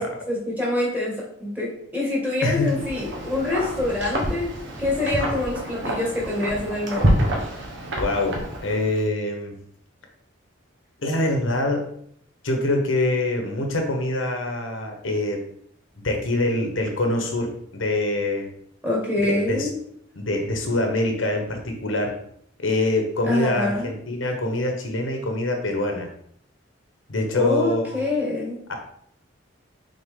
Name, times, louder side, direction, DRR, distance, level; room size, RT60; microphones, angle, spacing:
voice 1, 0.0-4.5 4.8-7.2 18.8-19.7 23.2-23.9 27.3-28.6, left 2 dB, 10° right, -5 dB, 2.2 m, -25 dB
voice 2, 2.4-2.8 8.0-9.6 11.0-11.9 12.4-15.4 16.0-18.5 19.3-19.7 20.2-22.2 22.6-26.1 27.1-28.0 28.7-28.8, left 2 dB, 75° left, 3 dB, 1.1 m, -25 dB
Wind, 2.5-9.0, right 1 dB, 65° right, 1.5 m, -27 dB
6.4 x 4.1 x 3.8 m, 0.67 s
head